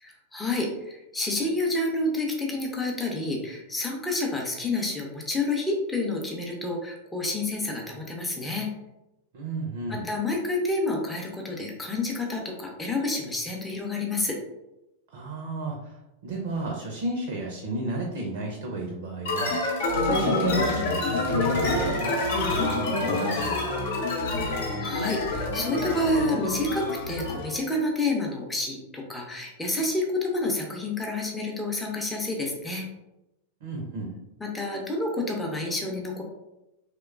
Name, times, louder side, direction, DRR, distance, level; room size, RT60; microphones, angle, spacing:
voice 1, 0.0-8.7 9.9-14.4 24.4-32.9 34.4-36.2, left 2 dB, 10° left, -1 dB, 0.5 m, -29 dB
voice 2, 9.3-10.1 15.1-16.0 16.2-19.6 20.0-23.8 33.6-34.1, right 2 dB, 50° right, 0 dB, 0.5 m, -32 dB
sound 1, 19.2-27.5, left 2 dB, 55° left, 0.6 m, -27 dB
3.0 x 2.1 x 2.3 m, 0.94 s
figure-of-eight pair, 90°, 0 cm